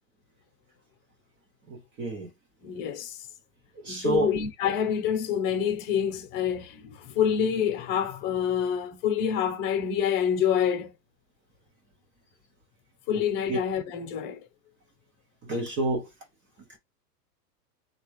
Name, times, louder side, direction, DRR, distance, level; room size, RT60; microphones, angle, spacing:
voice 1, 1.7-2.3 3.8-4.4 13.1-13.2 13.5-13.6 15.4-16.1, right 2 dB, 25° right, 0.7 m, -29 dB
voice 2, 2.6-3.2 3.9-10.9 13.1-14.4, left 8 dB, 35° left, 0.9 m, -27 dB
3.3 x 2.5 x 3.1 m
hypercardioid pair, 135°, 49 cm